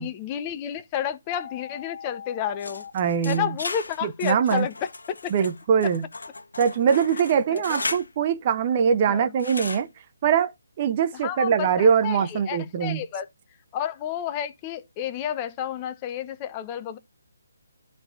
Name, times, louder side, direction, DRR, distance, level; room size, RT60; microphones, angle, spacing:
voice 1, 0.0-2.8 3.2-4.7 5.1-5.3 7.2-7.8 9.1-9.3 11.1-13.3 13.7-17.0, left 10 dB, 25° left, 1.0 m, -31 dB
sound 1, 1.3-2.9, left 7 dB, 50° left, 0.9 m, -40 dB
sound 2, 2.6-8.1 9.4-9.8, left 3 dB, 75° left, 1.2 m, -35 dB
voice 2, 2.9-3.5 4.0-4.7 5.3-6.0 6.6-9.9 10.2-10.5 10.8-13.0, right 7 dB, 35° right, 0.7 m, -22 dB
13.0 x 4.6 x 2.5 m
figure-of-eight pair, 150°, 0 cm